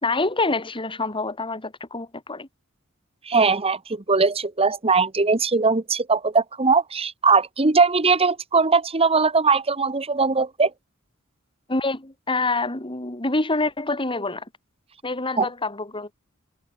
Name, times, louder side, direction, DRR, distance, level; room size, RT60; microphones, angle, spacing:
voice 1, 0.0-2.5 11.7-14.4 15.0-16.1, left 2 dB, 25° left, 2.9 m, -26 dB
voice 2, 3.3-10.7 15.4-15.5, right 4 dB, 30° right, 1.3 m, -20 dB
head